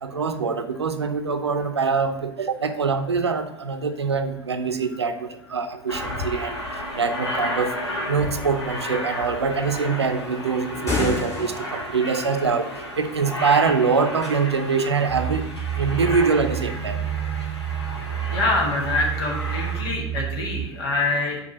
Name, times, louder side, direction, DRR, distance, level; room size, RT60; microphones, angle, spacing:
voice 1, 0.0-6.6 6.9-7.7 8.1-12.7 13.0-15.5 15.8-17.0, right 5 dB, 85° right, 9 dB, 0.5 m, -24 dB
Aircraft, 5.9-19.8, left 1 dB, 85° left, 1.3 m, -32 dB
sound 1, 10.7-12.0, left 3 dB, 20° left, 2.6 m, -28 dB
sound 2, 15.1-20.7, right 10 dB, 35° right, 0.6 m, -29 dB
voice 2, 18.3-21.4, left 2 dB, 65° left, -1 dB, 1.5 m, -25 dB
5.1 x 4.8 x 5.9 m, 0.83 s
figure-of-eight pair, 75°, 14 cm